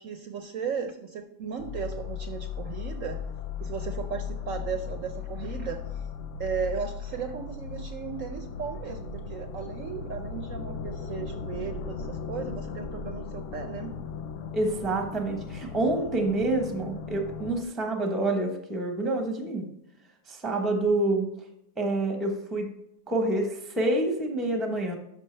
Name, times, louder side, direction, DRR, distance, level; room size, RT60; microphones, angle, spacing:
voice 1, 0.0-3.2 3.6-6.0 6.4-14.0 15.9-16.1 19.0-19.1, right 6 dB, 65° right, 6 dB, 0.9 m, -36 dB
sound 1, 1.6-17.6, left 6 dB, 70° left, 0.7 m, -37 dB
voice 2, 14.5-19.7 20.3-21.3 21.8-22.7 23.1-24.9, right 2 dB, ahead, 4 dB, 0.7 m, -27 dB
11.5 x 5.7 x 3.3 m, 0.81 s
omnidirectional pair, 1.8 m